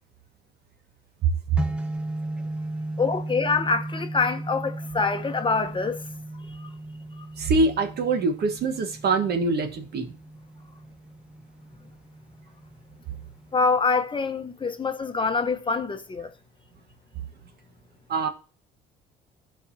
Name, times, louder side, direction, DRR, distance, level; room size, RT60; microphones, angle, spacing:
voice 1, 1.2-1.6 7.4-10.1 18.1-18.3, right 4 dB, 55° right, 1.4 m, -24 dB
sound 1, 1.6-13.6, right 2 dB, 5° right, 0.9 m, -36 dB
voice 2, 3.0-6.0 6.5-6.7 7.2-7.3 13.5-16.3, left 4 dB, 25° left, 0.9 m, -25 dB
13.0 x 4.8 x 2.8 m
supercardioid pair, 80°, 20 cm